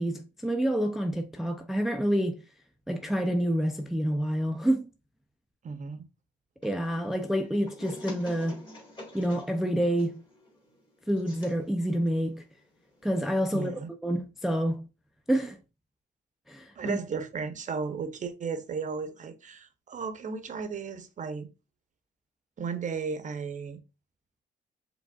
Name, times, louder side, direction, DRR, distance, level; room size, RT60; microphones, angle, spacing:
voice 1, 0.0-2.4 2.9-4.9 6.6-8.6 9.1-10.2 11.1-12.4 13.0-13.7 14.0-14.9 15.3-15.6 16.5-17.0, equal, ahead, 0.4 m, -28 dB
voice 2, 5.6-6.1 13.5-13.9 16.8-21.5 22.6-23.8, right 5 dB, 40° right, 0.7 m, -35 dB
sound 1, 6.6-13.3, left 1 dB, 25° left, 1.7 m, -48 dB
4.9 x 3.4 x 2.3 m
cardioid pair, 90°, 20 cm